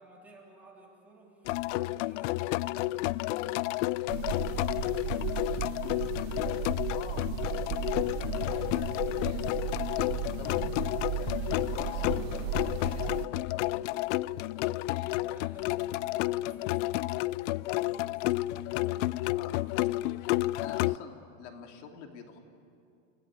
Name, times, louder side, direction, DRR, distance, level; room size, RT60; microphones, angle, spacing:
voice 1, 0.0-5.8 14.9-19.4 20.2-20.6, right 2 dB, 5° right, -4 dB, 3.4 m, -56 dB
sound 1, 1.4-21.0, left 18 dB, 85° left, 0.5 m, -31 dB
sound 2, 4.1-13.3, right 14 dB, 55° right, 0.7 m, -35 dB
voice 2, 6.9-10.7 11.2-14.1 19.3-19.5 20.6-22.4, left 6 dB, 70° left, 4 dB, 2.7 m, -46 dB
29.5 x 16.0 x 9.7 m, 2.5 s
supercardioid pair, 175°, 36 cm